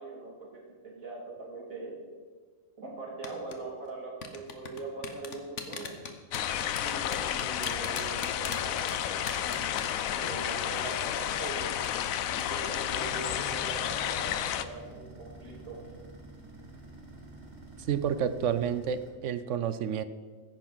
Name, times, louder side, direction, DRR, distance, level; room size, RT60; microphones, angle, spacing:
voice 1, 0.0-2.0 2.8-5.9 6.8-9.7 10.1-11.8 12.3-15.8, right 3 dB, 85° right, -1 dB, 3.1 m, -42 dB
sound 1, 3.2-3.5 4.2-10.5 10.8-10.9 11.3-11.4 11.8-12.1 12.4-12.7 13.0-13.1, left 6 dB, 65° left, 1.4 m, -38 dB
sound 2, 6.3-14.7, left 10 dB, 85° left, 1.1 m, -31 dB
sound 3, 12.5-19.1, right 2 dB, 30° right, 2.3 m, -48 dB
voice 2, 17.9-20.0, right 8 dB, 65° right, 13 dB, 0.9 m, -30 dB
14.5 x 10.5 x 4.1 m, 1.5 s
omnidirectional pair, 1.4 m